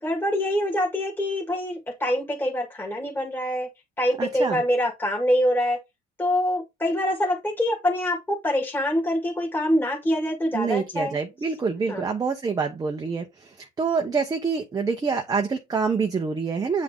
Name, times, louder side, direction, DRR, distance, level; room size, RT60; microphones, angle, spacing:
voice 1, 0.0-3.7 4.0-5.8 6.2-11.2 11.9-12.1, left 1 dB, 10° left, 1.9 m, -25 dB
voice 2, 4.2-4.6 10.5-16.8, right 5 dB, 20° right, 0.9 m, -26 dB
8.6 x 3.7 x 3.7 m
cardioid pair, 140°, 19 cm